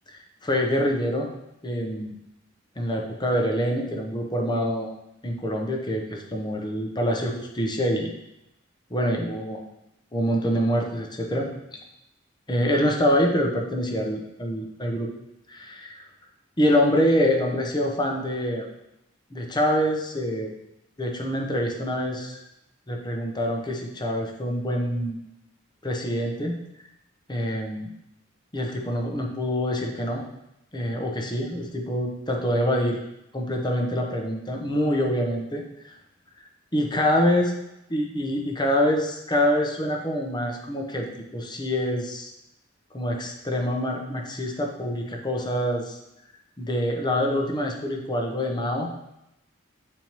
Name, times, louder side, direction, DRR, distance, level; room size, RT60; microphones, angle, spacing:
voice 1, 0.1-1.3 1.6-2.1 2.8-4.9 5.2-8.1 8.9-9.6 10.1-11.5 12.5-15.1 15.5-16.0 16.6-18.7 19.3-20.5 21.0-22.4 22.9-25.2 25.8-26.6 27.3-27.9 28.5-30.2 30.7-33.0 33.3-35.9 36.7-37.5 37.9-41.1 41.3-42.3 42.9-46.0 46.6-48.9, equal, 20° left, 1 dB, 0.9 m, -25 dB
8.8 x 4.4 x 3.0 m, 0.86 s
head